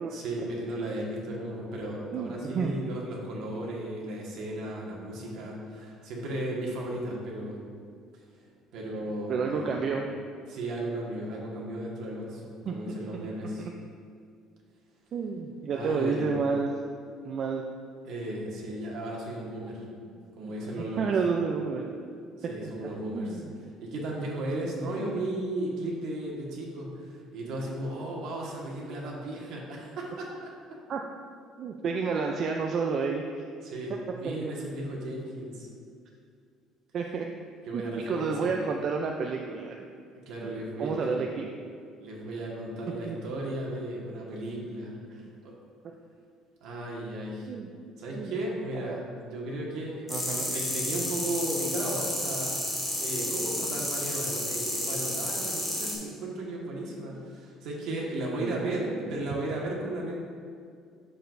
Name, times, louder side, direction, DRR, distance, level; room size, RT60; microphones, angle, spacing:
voice 1, 0.1-7.6 8.1-9.8 10.5-13.7 15.7-16.3 18.0-19.8 20.4-21.1 22.4-23.4 23.8-30.5 33.6-35.7 37.6-38.6 40.2-41.2 42.0-45.0 45.4-45.5 46.6-47.5 48.0-60.2, right 1 dB, 65° right, -2 dB, 1.5 m, -35 dB
voice 2, 2.1-2.8 9.3-10.1 12.7-12.8 15.1-16.7 17.2-17.6 20.1-20.2 20.4-20.5 20.9-21.9 23.1-23.4 30.9-31.0 31.6-33.4 36.9-37.3 37.7-39.7 40.8-41.5 43.1-43.2 45.2-45.3 47.5-47.7 48.1-48.3 48.8-49.0 50.1-50.5 53.2-53.3 58.4-59.1, right 5 dB, 40° right, 1 dB, 0.4 m, -30 dB
sound 1, 50.1-55.9, left 1 dB, 5° left, 1.7 m, -31 dB
8.7 x 6.7 x 2.6 m, 2.2 s
cardioid pair, 150°, 0 cm